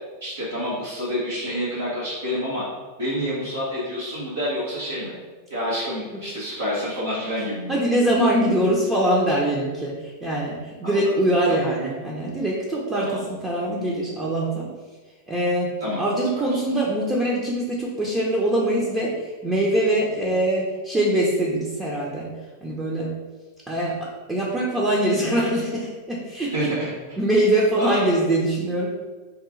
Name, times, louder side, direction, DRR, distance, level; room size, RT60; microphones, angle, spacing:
voice 1, 0.2-2.6 3.0-5.1 5.5-7.8 10.8-11.1 11.5-11.6 13.0-13.2 15.8-16.0 16.4-16.5 26.5-26.9 27.8-28.0, equal, 80° right, -9 dB, 0.9 m, -28 dB
voice 2, 7.7-14.7 15.3-22.3 22.6-23.1 23.7-24.0 24.3-26.7 27.2-28.9, right 1 dB, 15° right, -5 dB, 0.6 m, -23 dB
2.9 x 2.4 x 3.7 m, 1.3 s
hypercardioid pair, 95°, 0 cm